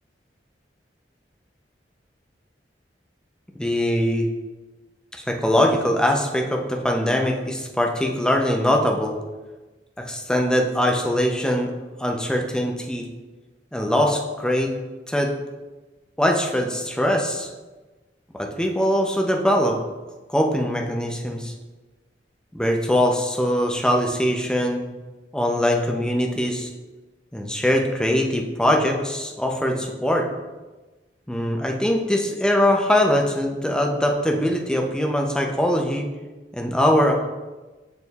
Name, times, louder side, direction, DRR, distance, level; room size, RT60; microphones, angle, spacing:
voice 1, 3.6-4.3 5.1-9.2 10.1-11.7 12.0-13.0 13.7-14.7 15.1-15.3 16.2-17.5 18.3-19.8 20.3-21.5 22.5-24.8 25.3-26.7 27.3-30.3 31.3-36.1 36.5-37.1, equal, 5° left, 1 dB, 0.6 m, -22 dB
6.8 x 6.3 x 2.4 m, 1.2 s
head